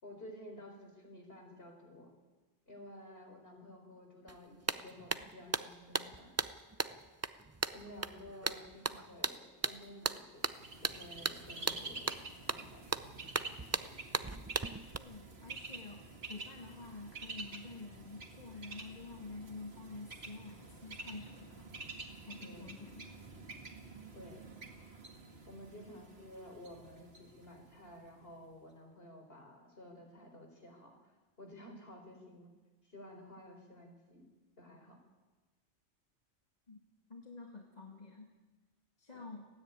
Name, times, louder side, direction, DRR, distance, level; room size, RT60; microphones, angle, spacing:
voice 1, 0.0-2.1 2.7-6.3 7.7-10.5 10.8-12.2 12.5-12.9 22.4-22.7 24.1-24.4 25.5-31.1 31.4-32.5 32.8-34.2 34.6-35.0 39.1-39.3, left 1 dB, 55° left, 2 dB, 4.6 m, -52 dB
sound 1, 4.3-4.4 4.7-15.0, right 3 dB, 25° right, 0.4 m, -37 dB
Bird, 10.4-28.2, right 3 dB, 60° right, 2.3 m, -49 dB
voice 2, 15.0-21.7 22.2-23.2 36.7-36.8 37.1-38.3 39.0-39.5, left 3 dB, 35° left, 1 dB, 1.9 m, -49 dB
29.5 x 10.0 x 9.5 m, 1.2 s
omnidirectional pair, 1.2 m